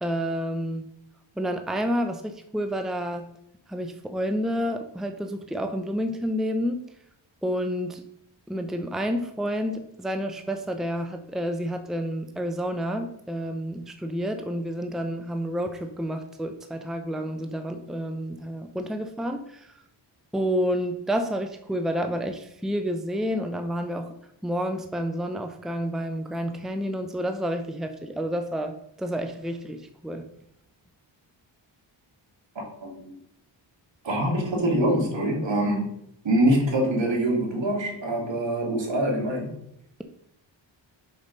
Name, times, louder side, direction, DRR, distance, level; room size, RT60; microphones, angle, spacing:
voice 1, 0.0-0.8 1.4-3.3 3.7-6.8 7.4-8.0 8.5-19.7 20.3-24.1 24.4-30.3, equal, ahead, 6 dB, 0.8 m, -29 dB
voice 2, 32.8-33.1 34.0-35.9 36.2-39.5, right 1 dB, 65° right, -1 dB, 2.7 m, -24 dB
5.8 x 5.4 x 5.3 m, 0.77 s
cardioid pair, 70°, 47 cm